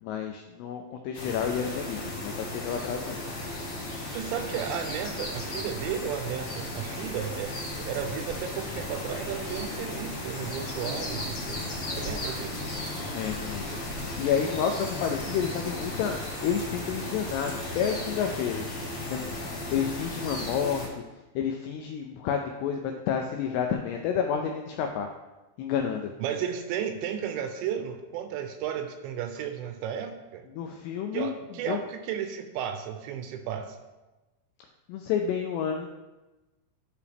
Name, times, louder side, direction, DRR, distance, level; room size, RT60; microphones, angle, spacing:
voice 1, 0.0-3.2 13.1-13.8 14.2-16.2 16.4-18.8 19.1-19.3 19.7-21.0 21.4-25.1 25.6-26.1 30.5-31.3 31.7-31.8 34.9-35.9, left 7 dB, 85° left, 4 dB, 2.4 m, -30 dB
sound 1, 1.1-20.9, left 2 dB, 65° left, 1.3 m, -35 dB
voice 2, 4.1-12.7 26.2-30.4 31.1-33.8, right 8 dB, 80° right, 6 dB, 2.8 m, -34 dB
sound 2, 6.9-17.7, right 1 dB, 25° right, 1.5 m, -46 dB
sound 3, 8.7-18.7, right 1 dB, 30° left, 0.5 m, -46 dB
12.0 x 4.8 x 3.5 m, 1.1 s
omnidirectional pair, 5.4 m